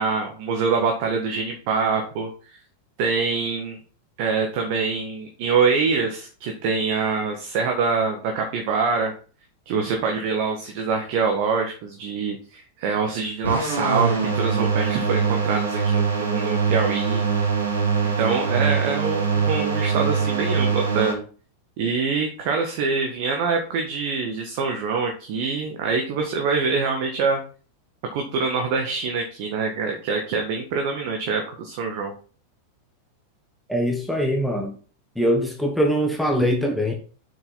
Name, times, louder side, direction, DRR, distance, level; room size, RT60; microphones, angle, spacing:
voice 1, 0.0-2.3 3.0-3.8 4.2-9.1 9.6-17.2 18.2-21.2 21.8-27.4 28.1-32.1, right 5 dB, 45° right, 3 dB, 1.6 m, -25 dB
sound 1, 13.4-21.1, right 5 dB, 75° right, 2.8 m, -23 dB
voice 2, 33.7-34.7 35.1-36.9, equal, ahead, 1 dB, 1.4 m, -22 dB
7.4 x 6.2 x 4.1 m, 0.39 s
figure-of-eight pair, 90°, 0 cm